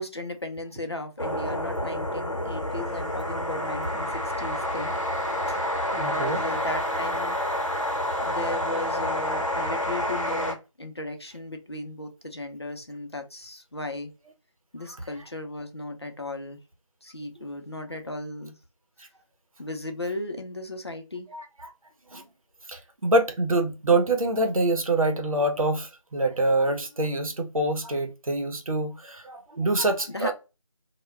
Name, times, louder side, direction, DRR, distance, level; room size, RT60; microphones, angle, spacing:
voice 1, 0.0-4.9 5.5-5.6 5.9-7.4 8.2-14.1 14.7-16.6 17.0-18.6 19.6-21.3 30.1-30.3, left 1 dB, 50° left, 0.5 m, -36 dB
sound 1, 1.2-10.5, left 1 dB, 65° left, 0.9 m, -28 dB
voice 2, 6.0-6.4 21.3-21.4 22.1-22.2 22.7-30.3, right 2 dB, 80° right, 0.7 m, -25 dB
2.2 x 2.2 x 3.1 m
figure-of-eight pair, 175°, 17 cm